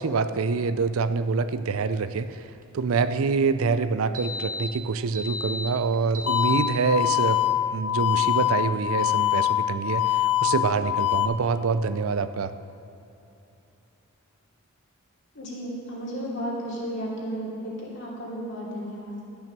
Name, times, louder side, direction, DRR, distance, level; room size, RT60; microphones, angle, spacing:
voice 1, 0.0-2.4 2.7-7.4 7.7-12.5, right 4 dB, 75° right, 12 dB, 0.5 m, -25 dB
sound 1, 1.9-2.2 2.6-2.7 3.0-3.3 4.1-4.7 5.1-6.9, left 2 dB, 40° right, 1.0 m, -33 dB
sound 2, 6.3-11.3, left 13 dB, 75° left, 0.5 m, -24 dB
voice 2, 15.3-19.2, equal, 55° left, -4 dB, 2.8 m, -33 dB
12.0 x 6.3 x 6.7 m, 2.9 s
head